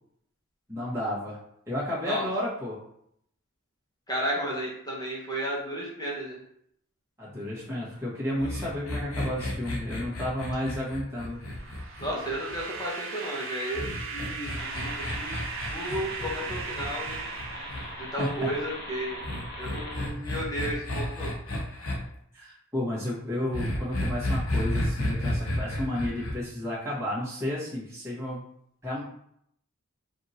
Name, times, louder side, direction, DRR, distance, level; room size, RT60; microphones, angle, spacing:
voice 1, 0.7-1.4 1.7-2.8 7.2-11.4 18.0-18.5 19.9-20.2 22.3-28.4 28.8-29.0, left 1 dB, 15° right, -8 dB, 1.5 m, -32 dB
voice 2, 4.1-6.4 12.0-15.4 15.7-17.2 18.0-19.2 19.6-21.3, equal, 20° left, -4 dB, 1.1 m, -33 dB
sound 1, 8.4-12.8 13.7-17.9 19.2-22.0 23.5-26.3, left 1 dB, 85° left, 0.8 m, -32 dB
sound 2, 11.4-18.4, right 5 dB, 60° right, 0.7 m, -38 dB
sound 3, 14.6-20.1, equal, 50° left, 0.9 m, -40 dB
4.9 x 2.6 x 2.9 m, 0.71 s
head